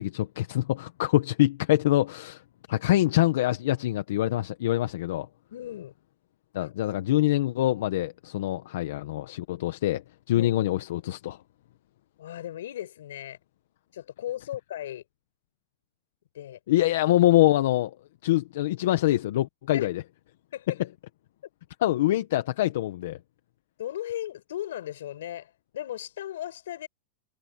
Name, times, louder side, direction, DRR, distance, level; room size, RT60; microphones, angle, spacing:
voice 1, 0.0-2.4 2.7-5.3 6.5-10.0 10.3-11.4 16.7-17.9 18.2-19.9 21.8-23.2, left 15 dB, 70° left, 1.2 m, -24 dB
voice 2, 5.5-5.9 6.6-6.7 7.1-7.2 10.3-10.5 12.2-13.4 13.9-15.0 16.3-16.6 19.7-19.9 20.5-20.8 23.8-26.9, left 12 dB, 90° left, 5.4 m, -36 dB
supercardioid pair, 160°, 0 cm